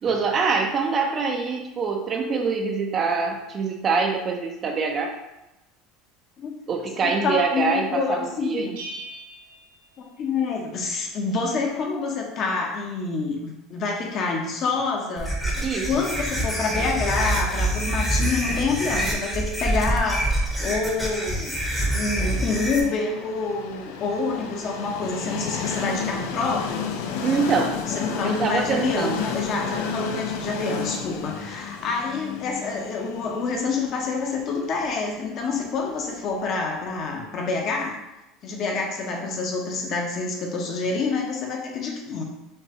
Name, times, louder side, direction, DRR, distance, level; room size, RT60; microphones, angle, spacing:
voice 1, 0.0-5.1 6.7-8.8 15.6-15.9 27.2-27.8 28.2-29.2, right 5 dB, 30° right, 3 dB, 0.5 m, -24 dB
voice 2, 7.0-8.7 10.2-21.6 21.9-26.9 27.9-37.9 38.4-42.2, left 4 dB, 45° left, 1 dB, 0.8 m, -27 dB
Bell, 8.8-10.6, right 2 dB, 85° right, 0.8 m, -41 dB
sound 1, 15.2-22.8, right 1 dB, ahead, 0.8 m, -26 dB
Train, 21.7-37.5, left 7 dB, 80° left, 0.4 m, -33 dB
5.3 x 2.2 x 2.8 m, 0.95 s
supercardioid pair, 130°, 0 cm